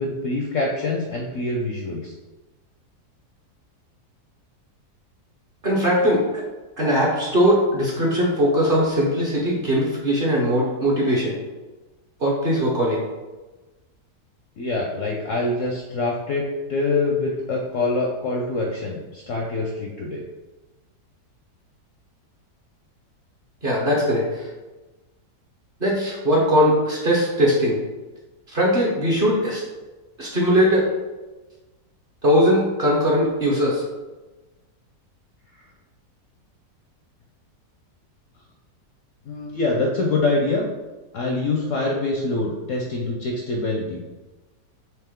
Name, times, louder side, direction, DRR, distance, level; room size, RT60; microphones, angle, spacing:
voice 1, 0.0-2.1 14.6-20.2 39.3-40.7 41.1-44.0, left 2 dB, 65° left, -1 dB, 0.8 m, -25 dB
voice 2, 5.6-6.2 6.8-11.3 12.2-13.0 23.6-24.4 25.8-27.8 28.5-29.6 30.2-30.8 32.2-33.8, equal, 40° right, -4 dB, 0.9 m, -20 dB
4.4 x 3.2 x 3.6 m, 1.2 s
omnidirectional pair, 1.8 m